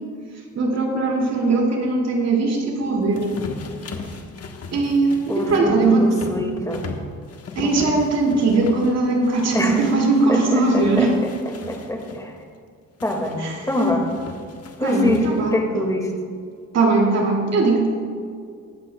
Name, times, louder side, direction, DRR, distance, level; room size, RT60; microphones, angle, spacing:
voice 1, 0.6-3.3 4.7-6.1 7.6-11.2 13.4-13.7 14.8-15.6 16.7-17.9, right 3 dB, 60° right, 0 dB, 2.5 m, -20 dB
Revolving Trash, 3.1-10.3 10.7-12.2 13.0-15.6, left 4 dB, 55° left, 1.3 m, -37 dB
voice 2, 5.3-6.8 7.6-7.7 9.5-9.8 10.3-11.1 11.7-12.4 13.0-13.4 13.7-14.0 14.8-15.3 15.5-16.1, left 1 dB, 10° left, 2 dB, 2.0 m, -24 dB
21.0 x 8.3 x 2.3 m, 2.2 s
cardioid pair, 90°, 30 cm